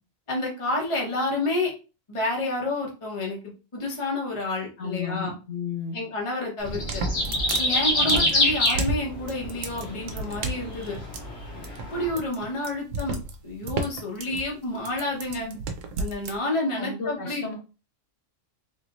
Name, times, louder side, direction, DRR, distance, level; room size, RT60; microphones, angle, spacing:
voice 1, 0.3-1.7 2.1-3.4 3.7-5.3 5.9-7.0 7.6-11.0 11.9-13.2 13.4-15.5 16.0-17.5, left 2 dB, 25° left, -1 dB, 0.9 m, -29 dB
voice 2, 4.8-6.0 8.0-8.3 15.4-15.6 16.8-17.6, left 5 dB, 80° left, -1 dB, 1.7 m, -33 dB
sound 1, 6.6-12.1, left 1 dB, 60° left, 1.3 m, -26 dB
sound 2, 6.6-16.4, right 3 dB, 80° right, 1.0 m, -33 dB
3.6 x 3.2 x 2.5 m, 0.32 s
omnidirectional pair, 1.3 m